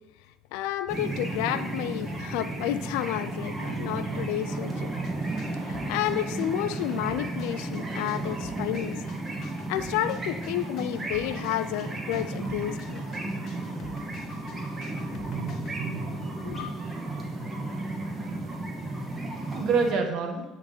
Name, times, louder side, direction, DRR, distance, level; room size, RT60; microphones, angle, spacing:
voice 1, 0.5-4.9 5.7-9.0 9.7-13.1 16.3-16.7, left 12 dB, 80° left, 12 dB, 0.4 m, -31 dB
sound 1, 0.9-19.9, right 2 dB, 30° right, 1.6 m, -34 dB
sound 2, 5.0-15.7, left 6 dB, 60° left, 0.8 m, -49 dB
voice 2, 15.3-16.4 19.5-20.4, right 4 dB, 60° right, 4 dB, 1.2 m, -28 dB
9.4 x 3.7 x 3.9 m, 1.0 s
supercardioid pair, 75°, 0 cm